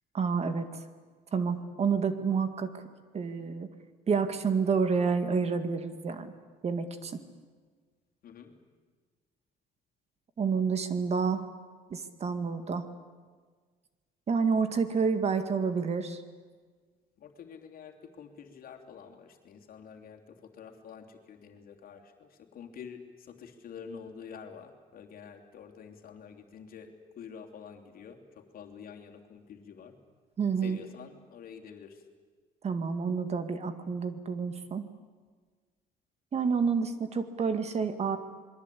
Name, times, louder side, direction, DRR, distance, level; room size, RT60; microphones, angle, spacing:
voice 1, 0.1-0.7 1.3-2.7 3.1-3.7 4.1-6.3 6.6-7.2 10.4-11.4 11.9-12.9 14.3-16.2 30.4-30.8 32.6-34.9 36.3-38.2, right 5 dB, 40° right, 9 dB, 2.0 m, -29 dB
voice 2, 8.2-8.5 17.2-29.9 30.6-32.0, left 6 dB, 60° left, 3 dB, 3.1 m, -48 dB
27.5 x 21.5 x 8.5 m, 1.5 s
cardioid pair, 110°, 17 cm